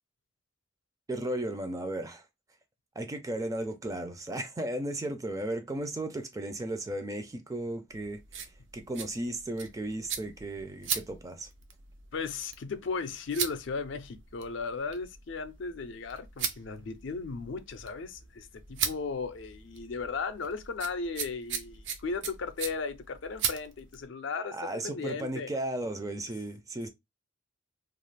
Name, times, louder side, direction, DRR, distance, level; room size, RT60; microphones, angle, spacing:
voice 1, 1.1-2.2 3.0-8.2 8.7-11.5 24.5-26.9, right 1 dB, 15° right, 0.4 m, -35 dB
sound 1, 7.9-24.1, right 7 dB, 65° right, 0.5 m, -39 dB
voice 2, 12.1-25.5, left 4 dB, 70° left, 0.4 m, -36 dB
2.4 x 2.3 x 3.2 m
head